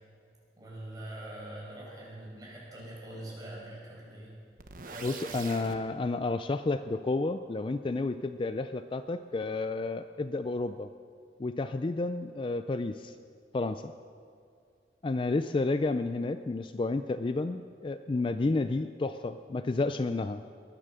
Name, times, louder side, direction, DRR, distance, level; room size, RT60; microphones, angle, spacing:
voice 1, 0.6-4.3 4.8-5.4, right 1 dB, 20° right, -4 dB, 5.2 m, -43 dB
sound 1, 4.6-5.8, right 5 dB, 50° right, 1.1 m, -44 dB
voice 2, 5.0-10.9 11.4-13.1 13.5-13.9 15.0-20.4, left 3 dB, 30° left, 10 dB, 0.3 m, -31 dB
21.0 x 9.9 x 6.7 m, 2.3 s
head